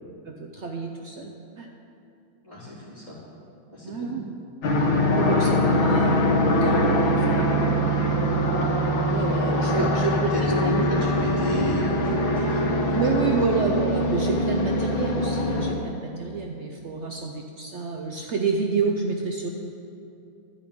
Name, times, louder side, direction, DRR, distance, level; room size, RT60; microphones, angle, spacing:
voice 1, 0.2-1.7 3.8-4.2 5.1-8.2 9.0-10.8 12.9-19.5, right 4 dB, 80° right, 1 dB, 0.6 m, -29 dB
voice 2, 2.4-3.2 3.7-4.2 9.6-13.5, equal, 20° left, -9 dB, 3.3 m, -31 dB
sound 1, 4.6-15.7, equal, 90° left, 1.9 m, -23 dB
11.5 x 5.3 x 8.6 m, 2.7 s
omnidirectional pair, 2.1 m